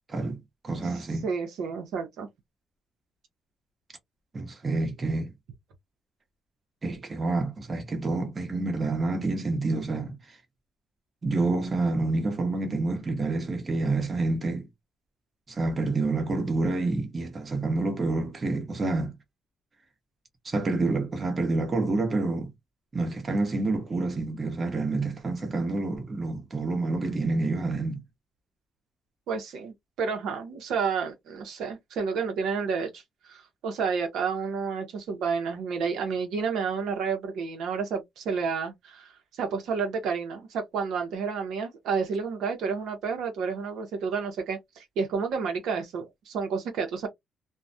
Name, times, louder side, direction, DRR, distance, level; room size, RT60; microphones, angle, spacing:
voice 1, 0.1-0.4 0.6-1.2 4.3-5.3 6.8-10.1 11.2-14.6 15.5-19.1 20.4-22.5 22.9-28.0, right 3 dB, 35° right, 0.9 m, -28 dB
voice 2, 1.2-2.3 29.3-33.0 33.3-39.1 39.4-47.1, right 5 dB, 80° right, 0.7 m, -30 dB
2.2 x 2.1 x 2.6 m
cardioid pair, 90°, 0 cm